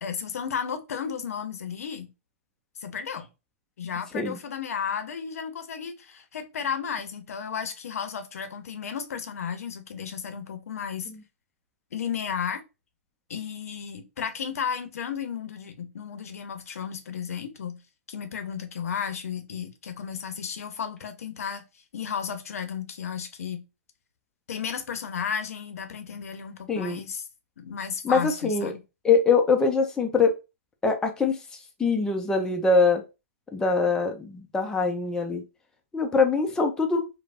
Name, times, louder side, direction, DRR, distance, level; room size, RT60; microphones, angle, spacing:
voice 1, 0.0-2.1 2.8-3.3 3.8-11.1 11.9-12.6 13.3-17.8 18.1-21.6 21.9-23.6 24.5-27.2 27.6-28.8, left 7 dB, 85° left, 0.6 m, -33 dB
voice 2, 26.7-27.0 28.0-28.7 29.0-30.3 30.8-31.4 31.8-33.0 33.5-35.4 35.9-37.1, left 4 dB, 10° left, 0.4 m, -23 dB
3.2 x 2.0 x 2.3 m
hypercardioid pair, 140°, 8 cm